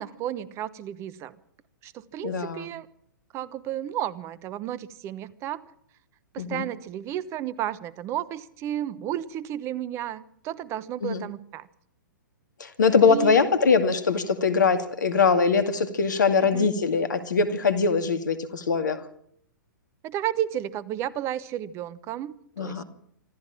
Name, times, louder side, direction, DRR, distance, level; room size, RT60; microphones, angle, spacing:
voice 1, 0.0-1.4 1.8-2.9 3.3-5.6 6.3-11.7 13.0-13.4 16.4-16.7 20.0-22.8, right 11 dB, 25° right, 19 dB, 0.9 m, -32 dB
voice 2, 2.2-2.7 6.4-6.6 11.0-11.2 12.6-19.0 22.6-22.8, left 5 dB, 65° left, 10 dB, 2.2 m, -22 dB
25.5 x 13.5 x 7.4 m, 0.68 s
figure-of-eight pair, 110°, 11 cm